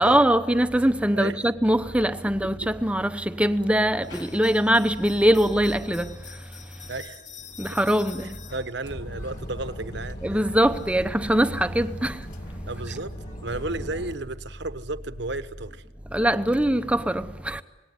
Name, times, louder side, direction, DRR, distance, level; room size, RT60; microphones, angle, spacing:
voice 1, 0.0-6.2 7.6-8.4 10.2-12.2 16.1-17.6, right 1 dB, 5° right, 0.8 m, -22 dB
sound 1, 4.0-14.2, left 6 dB, 65° left, 4.3 m, -48 dB
voice 2, 6.9-7.2 8.5-10.4 12.6-13.1 13.4-15.8, right 2 dB, 60° right, 1.2 m, -33 dB
sound 2, 8.8-14.2, equal, 40° left, 2.4 m, -38 dB
27.5 x 19.0 x 9.8 m
head